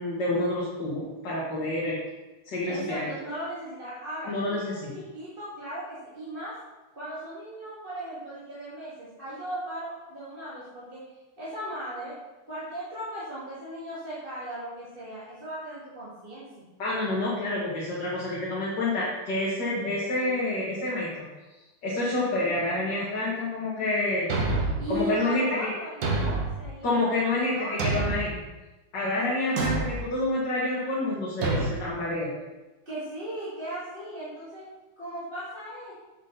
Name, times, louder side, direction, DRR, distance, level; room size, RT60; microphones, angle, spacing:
voice 1, 0.0-2.0 2.5-3.1 4.3-4.9 16.8-21.3 21.8-24.3 24.9-25.7 26.8-28.4 28.9-32.3, left 2 dB, 55° left, -7 dB, 2.3 m, -28 dB
voice 2, 2.7-6.5 6.9-11.0 11.4-12.1 12.5-16.6 24.8-27.1 27.4-27.9 32.9-34.6 35.0-35.9, equal, 25° right, -10 dB, 2.3 m, -37 dB
Thump thud, 24.3-24.9 26.0-26.6 27.8-28.3 29.6-30.0 31.4-31.7, right 3 dB, 60° right, 1.5 m, -27 dB
7.4 x 7.2 x 4.0 m, 1.1 s
omnidirectional pair, 2.4 m